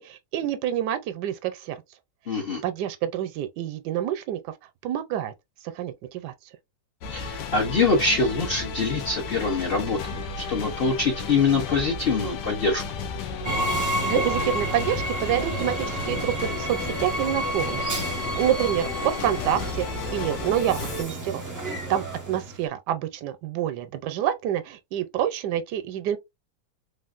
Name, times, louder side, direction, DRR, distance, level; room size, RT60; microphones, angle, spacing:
voice 1, 0.0-1.8 2.6-4.4 4.8-5.3 5.7-6.3 14.0-26.2, right 11 dB, 80° right, 1.2 m, -28 dB
voice 2, 2.3-2.6 7.1-12.8, left 4 dB, 50° left, 0.7 m, -24 dB
sound 1, 7.0-21.0, left 5 dB, 90° left, 1.2 m, -34 dB
Train, 13.4-22.6, right 1 dB, 20° right, 0.4 m, -30 dB
3.4 x 2.3 x 2.4 m
omnidirectional pair, 1.8 m